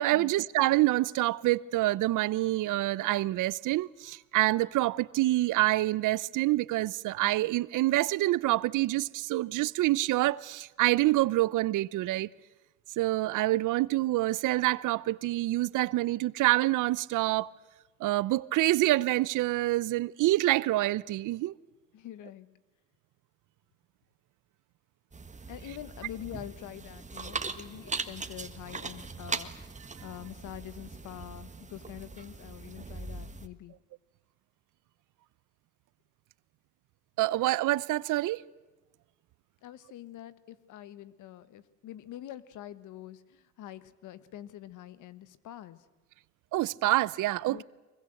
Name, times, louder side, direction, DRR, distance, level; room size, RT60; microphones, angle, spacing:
voice 1, 0.0-12.3 13.0-17.5 18.0-21.5 37.2-38.4 46.5-47.6, right 17 dB, 85° right, 0.7 m, -27 dB
voice 2, 21.9-22.5 25.5-29.5 30.0-33.8 39.6-45.9 47.5-47.6, left 12 dB, 85° left, 1.4 m, -45 dB
sound 1, 25.1-33.5, right 4 dB, 25° right, 1.6 m, -40 dB
24.0 x 22.0 x 7.8 m
cardioid pair, 90°, 30 cm